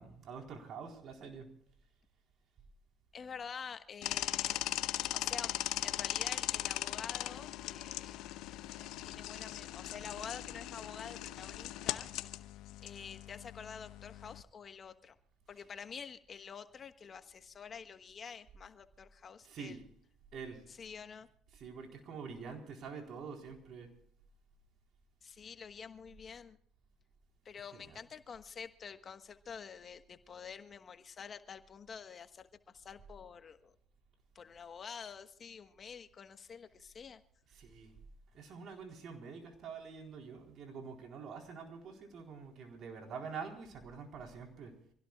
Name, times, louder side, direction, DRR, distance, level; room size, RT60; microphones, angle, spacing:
voice 1, 0.0-1.5 19.4-19.8 20.3-20.6 21.5-23.9 27.7-28.0 37.5-37.9 38.3-44.8, right 5 dB, 60° right, 2 dB, 4.1 m, -46 dB
voice 2, 3.1-4.7 5.1-5.5 5.8-8.2 8.6-12.1 12.8-15.2 15.5-19.8 20.7-21.3 25.2-26.6 27.4-33.7 34.3-37.2, left 6 dB, 40° left, 9 dB, 1.3 m, -48 dB
sound 1, 4.0-14.4, left 14 dB, 75° left, 0.8 m, -39 dB
26.5 x 17.0 x 2.4 m, 0.66 s
supercardioid pair, 80°, 0 cm